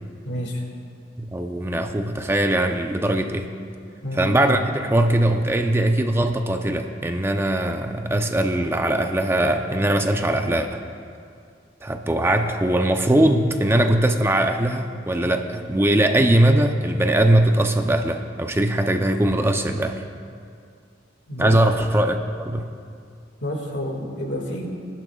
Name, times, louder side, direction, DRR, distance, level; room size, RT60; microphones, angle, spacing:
voice 1, 0.2-0.6 4.0-4.3 21.3-21.5 23.4-24.7, left 1 dB, 80° left, 1 dB, 2.0 m, -29 dB
voice 2, 1.2-3.5 4.2-10.8 11.8-20.0 21.4-22.7, right 1 dB, 15° right, 6 dB, 0.5 m, -21 dB
19.5 x 12.0 x 2.3 m, 2.3 s
head